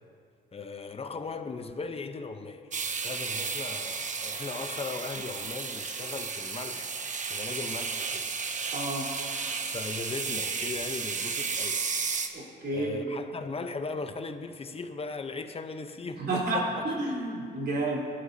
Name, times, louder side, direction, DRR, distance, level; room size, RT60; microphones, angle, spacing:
voice 1, 0.5-2.7 3.0-6.9 7.3-8.3 9.7-11.8 12.7-16.9, left 4 dB, 30° left, 0.8 m, -38 dB
sound 1, 2.7-12.3, right 5 dB, 40° right, 0.9 m, -33 dB
voice 2, 8.7-9.1 12.3-13.1 16.2-18.0, right 2 dB, 55° right, 3.6 m, -30 dB
19.0 x 11.5 x 2.8 m
cardioid pair, 90°, 20 cm